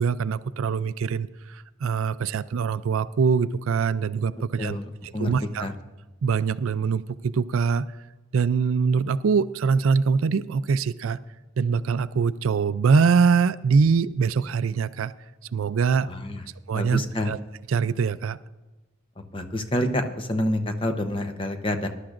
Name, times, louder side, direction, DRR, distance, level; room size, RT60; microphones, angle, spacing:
voice 1, 0.0-4.8 5.2-5.7 6.2-7.9 8.3-11.2 11.6-15.1 15.5-16.1 16.7-17.0 17.3-17.4 17.7-18.4, right 5 dB, 85° right, 15 dB, 0.4 m, -23 dB
voice 2, 4.6-5.3 5.6-5.7 16.1-16.4 16.7-17.3 19.3-21.9, left 1 dB, 25° left, 6 dB, 0.8 m, -28 dB
20.5 x 11.5 x 2.5 m, 1.2 s
head